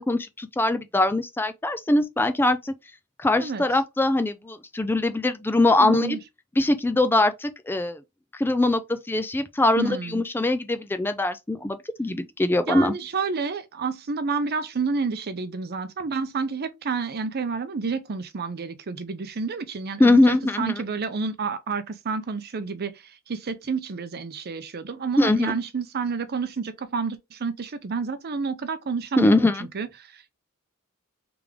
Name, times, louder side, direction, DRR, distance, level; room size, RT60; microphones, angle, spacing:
voice 1, 0.0-2.7 3.2-6.2 6.6-8.0 8.3-12.9 20.0-20.8 25.2-25.6 29.2-29.7, left 2 dB, 10° left, 0.3 m, -22 dB
voice 2, 5.8-6.2 9.8-10.2 12.7-29.5 29.7-30.3, right 5 dB, 45° right, 0.6 m, -30 dB
3.4 x 3.4 x 3.4 m
head